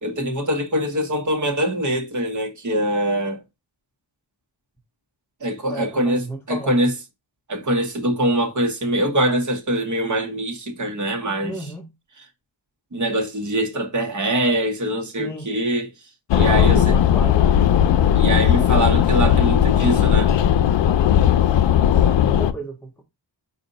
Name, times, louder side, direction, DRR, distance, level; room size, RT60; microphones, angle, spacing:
voice 1, 0.0-3.4 5.4-6.9 7.5-11.7 12.9-15.9 16.3-17.0 18.1-20.3, right 1 dB, 40° right, 1.2 m, -23 dB
voice 2, 5.7-6.8 11.4-11.9 15.2-15.5 16.4-17.5 22.0-23.0, right 1 dB, 5° left, 0.5 m, -33 dB
sound 1, 16.3-22.5, left 10 dB, 75° left, 0.5 m, -17 dB
5.0 x 2.6 x 3.8 m
wide cardioid pair, 130°, 45 cm